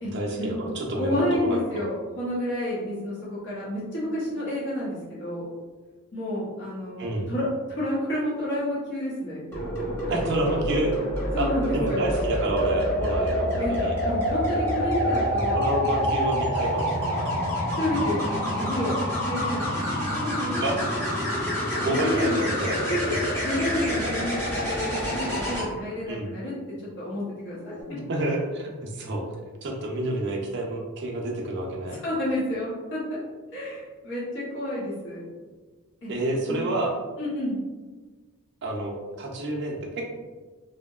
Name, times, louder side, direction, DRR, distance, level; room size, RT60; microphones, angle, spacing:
voice 1, 0.1-1.8 7.0-7.3 10.1-10.9 11.4-14.0 15.5-17.3 20.6-20.8 21.7-22.3 22.6-22.8 23.1-23.2 26.1-26.3 27.9-29.2 29.6-32.0 36.1-36.9 38.6-40.1, right 1 dB, 50° right, -1 dB, 0.4 m, -29 dB
voice 2, 0.9-5.5 6.1-9.4 11.3-12.1 13.6-15.6 15.8-16.0 17.8-19.0 19.3-20.7 21.8-22.5 22.9-26.5 27.0-27.7 31.9-33.2 33.5-35.2 36.0-36.1 36.5-36.7 37.2-37.6, left 1 dB, 55° left, -8 dB, 0.7 m, -30 dB
sound 1, 9.5-25.6 27.5-27.8, equal, 10° left, 0.7 m, -27 dB
2.7 x 2.1 x 2.3 m, 1.3 s
head